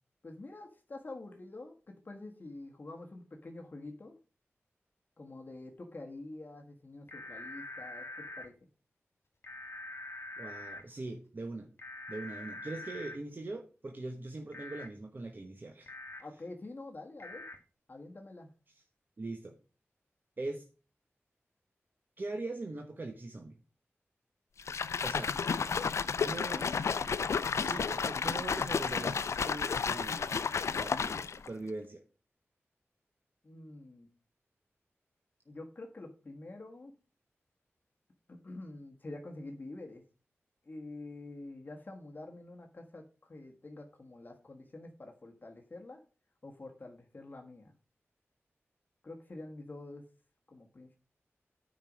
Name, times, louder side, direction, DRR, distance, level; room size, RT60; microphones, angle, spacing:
voice 1, 0.2-4.2 5.2-8.5 16.2-17.5 17.9-18.5 33.4-34.1 35.4-36.9 38.3-40.0 40.6-46.0 46.4-47.7 49.0-50.1 50.5-51.0, left 2 dB, 40° left, 2 dB, 1.4 m, -47 dB
sound 1, 7.1-8.5 9.4-10.8 11.8-13.2 14.5-14.9 15.9-16.2 17.2-17.5, left 2 dB, 60° left, 2.1 m, -44 dB
voice 2, 10.4-11.7 12.1-15.9 19.2-19.6 20.4-20.6 22.2-23.6 25.0-25.3 26.2-26.7 27.6-30.4 30.7-32.0, right 2 dB, 45° right, 4 dB, 1.1 m, -41 dB
sound 2, 24.6-31.5, left 6 dB, 90° left, 0.5 m, -32 dB
9.2 x 5.2 x 6.2 m, 0.36 s
wide cardioid pair, 105°, 5 cm